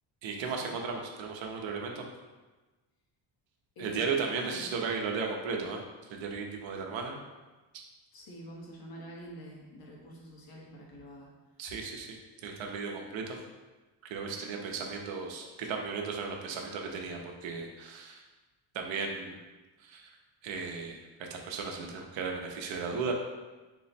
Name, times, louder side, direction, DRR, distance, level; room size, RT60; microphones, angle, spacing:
voice 1, 0.2-2.0 3.8-5.8 6.1-7.2 7.7-7.8 11.6-12.2 12.4-13.4 14.0-18.2 18.7-19.4 19.8-20.1 20.4-23.1, right 5 dB, 75° right, 2 dB, 0.7 m, -35 dB
voice 2, 3.8-4.7 8.1-11.3, equal, 50° left, -2 dB, 0.9 m, -47 dB
3.8 x 2.0 x 4.2 m, 1.2 s
cardioid pair, 145°, 46 cm